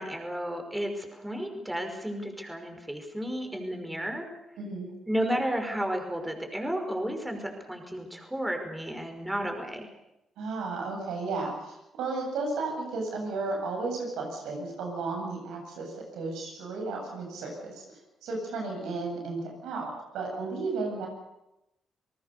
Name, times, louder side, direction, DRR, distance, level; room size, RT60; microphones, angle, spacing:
voice 1, 0.0-4.3 5.1-9.9, equal, 10° right, 4 dB, 5.4 m, -32 dB
voice 2, 4.6-4.9 10.4-17.8 18.2-21.1, right 3 dB, 80° right, 1 dB, 8.0 m, -33 dB
29.0 x 19.0 x 6.8 m, 0.89 s
supercardioid pair, 60°, 0 cm